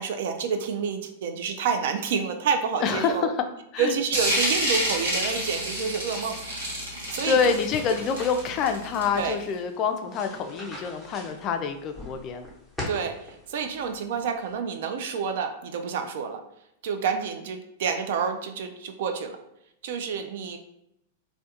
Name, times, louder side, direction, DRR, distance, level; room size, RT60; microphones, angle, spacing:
voice 1, 0.0-3.3 3.8-6.4 7.1-7.5 9.1-9.4 12.9-13.1 13.5-16.4 16.8-19.4 19.8-20.6, right 6 dB, 65° right, 6 dB, 0.3 m, -28 dB
voice 2, 2.8-3.4 3.7-4.0 7.2-12.5, left 6 dB, 40° left, 6 dB, 0.3 m, -26 dB
sound 1, 4.1-9.4, equal, 85° right, 1.1 m, -28 dB
sound 2, 7.1-14.5, left 1 dB, ahead, 0.8 m, -43 dB
2.3 x 2.1 x 2.7 m, 0.80 s
hypercardioid pair, 120°, 0 cm